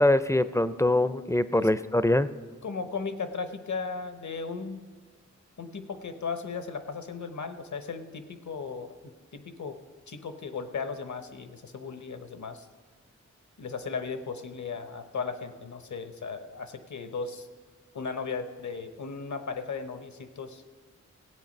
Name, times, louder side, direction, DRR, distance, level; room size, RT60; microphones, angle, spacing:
voice 1, 0.0-2.3, left 1 dB, 10° left, 14 dB, 0.4 m, -23 dB
voice 2, 2.6-4.8 5.6-9.8 10.1-12.7 13.6-17.5 17.9-20.6, left 5 dB, 70° left, 9 dB, 0.9 m, -36 dB
16.5 x 8.5 x 5.3 m, 1.5 s
wide cardioid pair, 65°, 30 cm